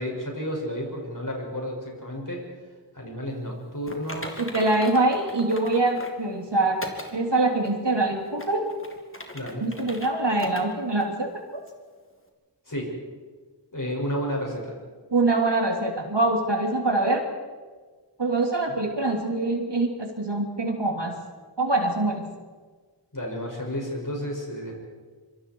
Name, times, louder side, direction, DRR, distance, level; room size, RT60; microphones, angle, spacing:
voice 1, 0.0-2.4 2.9-4.4 9.3-9.7 12.7-12.9 13.7-14.7 23.1-24.7, equal, 50° left, -1 dB, 6.7 m, -31 dB
Typing, 3.9-6.2 6.8-7.1 7.6-7.7 8.3-10.1 10.4-10.6 11.0-11.1 11.7-11.8, left 1 dB, 30° left, 2.9 m, -39 dB
voice 2, 4.4-6.8 7.1-8.7 9.6-11.6 15.1-17.2 18.2-21.1 21.6-22.2, right 2 dB, 75° right, 2 dB, 3.1 m, -24 dB
26.0 x 24.5 x 4.8 m, 1.5 s
wide cardioid pair, 50°, 42 cm